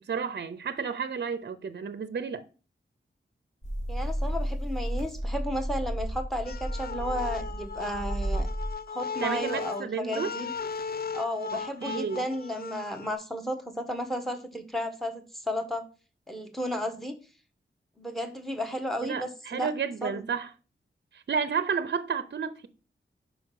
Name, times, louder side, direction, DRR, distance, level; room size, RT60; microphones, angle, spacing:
voice 1, 0.1-2.4 9.2-10.3 11.5-12.3 19.0-20.5 21.1-22.7, right 6 dB, 55° right, 0.6 m, -32 dB
sound 1, 3.6-8.7, equal, 35° left, 2.4 m, -32 dB
voice 2, 3.9-8.5 8.9-10.5 11.1-15.8 16.3-17.2 18.0-19.7 20.0-20.2, equal, ahead, 1.4 m, -33 dB
sound 2, 6.4-13.1, left 5 dB, 50° left, 0.4 m, -37 dB
5.1 x 5.0 x 6.3 m
wide cardioid pair, 90°, 20 cm